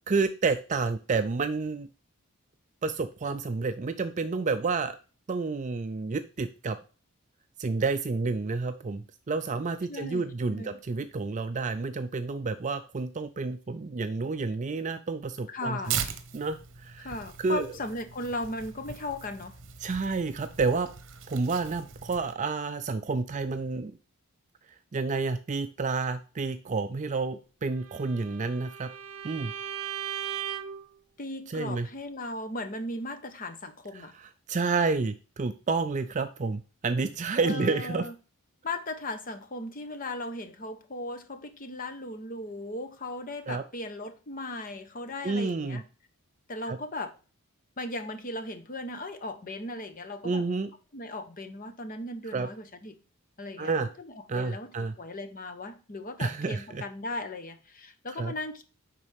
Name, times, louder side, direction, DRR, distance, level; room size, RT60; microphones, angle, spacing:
voice 1, 0.1-1.9 2.8-5.0 5.3-6.8 7.6-16.0 16.3-17.1 17.4-17.7 19.8-20.9 21.3-24.0 24.9-28.9 29.2-29.5 31.5-31.9 34.2-38.1 43.5-43.6 45.2-45.8 46.7-46.8 50.2-50.7 52.3-52.5 53.6-53.9 54.3-54.9 56.2-56.8 58.2-58.3, right 4 dB, 35° right, 9 dB, 0.4 m, -30 dB
voice 2, 9.9-10.8 15.5-16.0 17.0-19.6 31.2-34.1 37.4-38.1 38.6-45.8 46.5-47.1 47.8-50.4 50.9-53.0 53.4-58.6, left 2 dB, 40° left, 9 dB, 0.9 m, -37 dB
Tearing, 15.8-22.3, right 7 dB, 60° right, 1.0 m, -39 dB
Bowed string instrument, 27.8-30.9, right 9 dB, 80° right, 0.7 m, -37 dB
10.0 x 4.0 x 3.4 m, 0.36 s
head